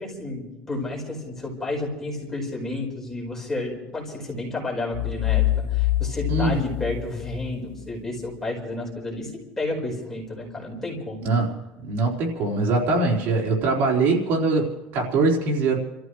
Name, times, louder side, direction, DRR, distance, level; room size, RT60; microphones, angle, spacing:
voice 1, 0.0-9.3 9.6-11.3, left 2 dB, 10° left, -1 dB, 4.8 m, -31 dB
sound 1, 4.9-7.8, left 15 dB, 60° left, 0.8 m, -25 dB
voice 2, 11.8-15.8, right 3 dB, 50° right, -1 dB, 4.1 m, -22 dB
29.5 x 14.5 x 3.2 m, 1.0 s
cardioid pair, 165°, 4 cm